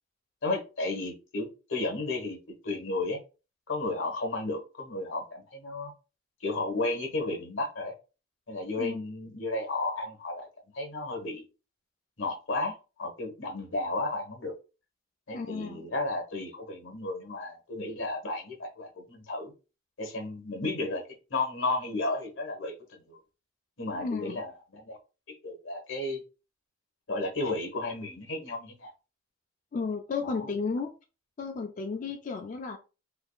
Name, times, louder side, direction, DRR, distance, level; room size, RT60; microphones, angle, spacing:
voice 1, 0.4-3.2 3.7-5.9 6.4-7.9 8.5-10.5 10.7-11.4 12.2-14.5 15.3-19.5 20.0-21.0 21.3-23.2 23.8-25.0 25.3-26.2 27.1-28.9 30.2-30.5, left 2 dB, 85° left, 4 dB, 1.1 m, -33 dB
voice 2, 15.3-15.9 24.0-24.4 29.7-30.9 31.4-32.8, left 4 dB, 40° left, 3 dB, 0.3 m, -33 dB
3.5 x 3.4 x 2.3 m, 0.31 s
head